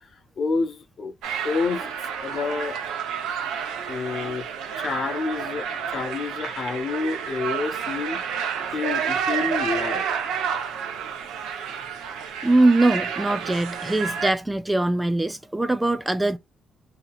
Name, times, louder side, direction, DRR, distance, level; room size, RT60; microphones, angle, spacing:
voice 1, 0.4-1.1 1.4-1.9 2.2-2.8 3.9-4.5 4.7-8.2 8.7-10.1, left 4 dB, 50° left, 0.8 m, -28 dB
sound 1, 1.2-14.3, right 7 dB, 90° right, 0.8 m, -30 dB
voice 2, 12.4-16.4, right 2 dB, 10° right, 0.3 m, -22 dB
2.8 x 2.7 x 2.3 m
cardioid pair, 90°, 0 cm